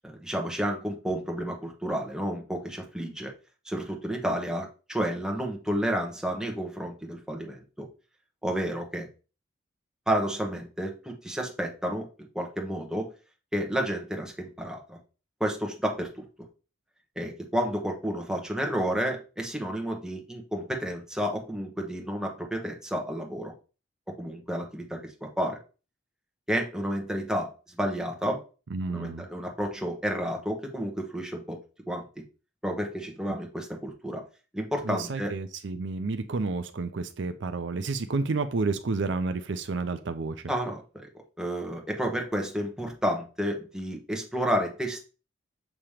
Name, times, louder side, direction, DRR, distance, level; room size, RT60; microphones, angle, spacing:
voice 1, 0.0-3.3 3.7-7.8 8.4-9.1 10.1-12.1 12.3-13.1 13.5-15.0 15.4-16.2 17.2-23.5 24.2-25.0 25.4-25.6 26.5-27.5 27.8-28.4 28.9-31.6 31.9-32.0 32.6-34.2 34.5-35.3 40.5-40.8 41.4-45.0, equal, 5° right, 1 dB, 1.1 m, -31 dB
voice 2, 28.7-29.3 33.3-33.4 34.8-40.4, right 3 dB, 65° right, 9 dB, 0.5 m, -30 dB
7.2 x 2.9 x 4.9 m, 0.35 s
head